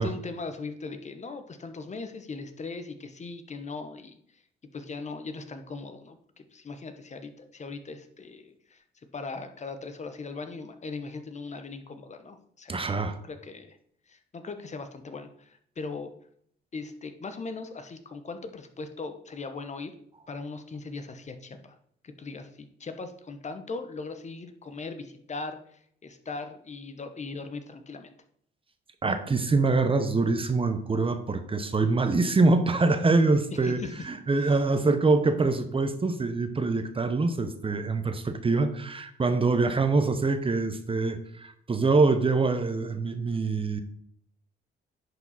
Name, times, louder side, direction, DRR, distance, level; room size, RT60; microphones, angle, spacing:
voice 1, 0.0-4.4 4.7-8.8 9.1-13.8 14.1-16.1 16.7-19.9 20.3-21.8 22.0-28.1 33.6-33.9 34.4-34.6, left 3 dB, 35° left, 8 dB, 1.0 m, -39 dB
voice 2, 12.7-13.2 29.0-33.8 34.1-43.8, right 3 dB, 25° right, 9 dB, 1.0 m, -24 dB
10.5 x 4.9 x 4.2 m, 0.67 s
cardioid pair, 90°, 20 cm